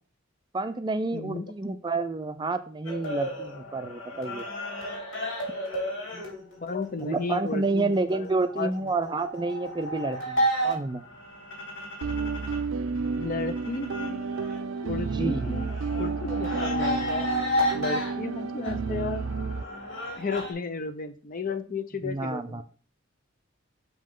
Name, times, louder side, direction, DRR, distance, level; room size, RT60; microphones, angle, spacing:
voice 1, 0.5-4.4 7.0-11.0 15.1-15.6 22.0-22.6, right 3 dB, 20° right, 10 dB, 0.4 m, -29 dB
voice 2, 1.1-1.5 6.1-6.2 6.6-8.9 13.2-14.2 14.8-17.5 17.7-19.2 20.2-22.6, left 4 dB, 45° left, 10 dB, 0.6 m, -34 dB
sound 1, 2.8-12.6 13.0-20.5, equal, 70° left, 3.2 m, -33 dB
sound 2, 12.0-19.6, right 4 dB, 80° right, 0.4 m, -31 dB
6.2 x 5.4 x 3.6 m, 0.40 s
head